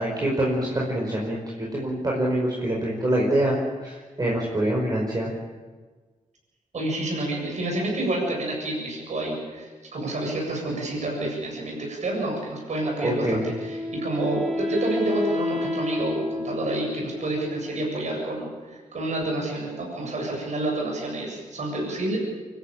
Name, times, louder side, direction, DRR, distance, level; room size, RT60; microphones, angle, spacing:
voice 1, 0.0-3.5 3.8-5.3 13.0-13.5, right 1 dB, 30° right, -3 dB, 5.2 m, -25 dB
voice 2, 6.7-22.2, right 2 dB, 65° right, -1 dB, 7.8 m, -29 dB
Wind instrument woodwind instrument, 13.1-18.2, left 2 dB, 5° left, 6.0 m, -30 dB
24.5 x 14.0 x 8.9 m, 1.4 s
cardioid pair, 80°, 13 cm